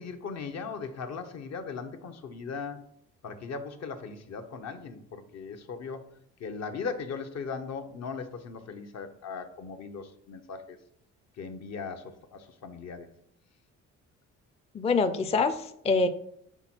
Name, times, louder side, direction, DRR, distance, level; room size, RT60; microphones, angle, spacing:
voice 1, 0.0-2.8 3.2-6.1 6.4-10.8 11.4-13.1, left 5 dB, 60° left, 7 dB, 0.8 m, -38 dB
voice 2, 14.7-16.1, left 4 dB, 20° left, 9 dB, 0.4 m, -25 dB
5.9 x 3.9 x 4.4 m, 0.71 s
cardioid pair, 90°, 30 cm